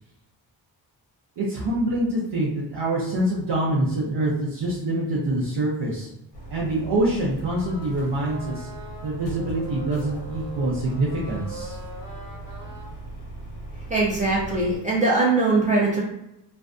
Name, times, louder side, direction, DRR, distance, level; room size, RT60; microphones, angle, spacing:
voice 1, 1.4-6.1 6.5-8.7 9.0-11.8, right 1 dB, 65° right, -5 dB, 0.6 m, -25 dB
sound 1, 6.3-14.8, right 1 dB, 85° left, 0.8 m, -39 dB
sound 2, 7.4-12.9, right 1 dB, 40° right, 0.9 m, -42 dB
voice 2, 13.9-16.0, right 3 dB, 20° right, -6 dB, 0.4 m, -21 dB
2.5 x 2.2 x 2.4 m, 0.85 s
wide cardioid pair, 115°, 44 cm